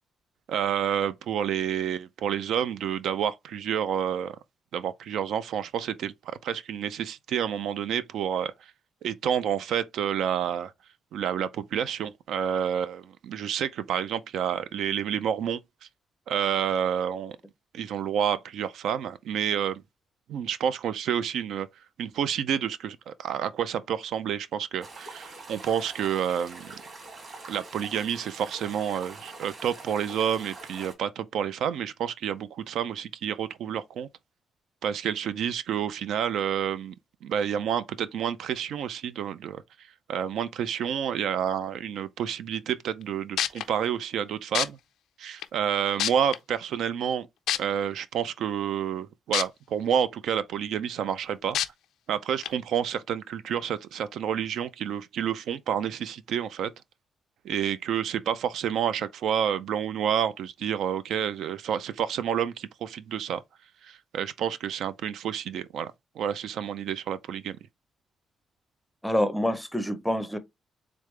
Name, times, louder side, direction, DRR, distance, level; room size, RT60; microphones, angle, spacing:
voice 1, 0.5-4.4 4.7-8.7 9.0-10.7 11.1-15.6 16.3-17.4 17.7-19.8 20.3-21.7 22.0-26.7 27.5-34.1 34.8-37.0 37.2-39.6 40.1-44.8 45.2-47.3 47.5-51.6 52.1-56.7 57.4-63.4 63.8-67.6, right 8 dB, 70° right, 0.4 m, -29 dB
sound 1, 24.8-30.9, right 3 dB, 40° right, 1.7 m, -44 dB
sound 2, 43.0-43.1 43.4-43.6 44.5-44.7 45.4-45.5 46.0-46.4 47.5-47.6 49.3-49.4 49.9-50.0 51.5-51.7 52.4-52.5, left 11 dB, 85° left, 0.4 m, -25 dB
voice 2, 69.0-70.4, left 1 dB, 5° left, 0.5 m, -26 dB
3.7 x 3.5 x 3.2 m
cardioid pair, 165°, 0 cm